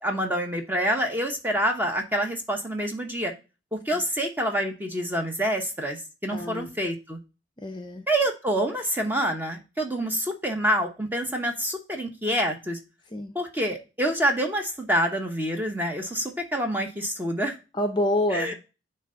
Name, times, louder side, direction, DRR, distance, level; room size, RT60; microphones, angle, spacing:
voice 1, 0.0-3.3 3.7-7.2 8.1-12.8 13.3-17.6 18.3-18.5, right 1 dB, 10° right, 3 dB, 0.9 m, -27 dB
voice 2, 6.3-6.7 7.6-8.0 13.1-13.3 17.7-18.5, left 1 dB, 20° left, 4 dB, 0.6 m, -27 dB
9.2 x 3.3 x 3.8 m, 0.30 s
head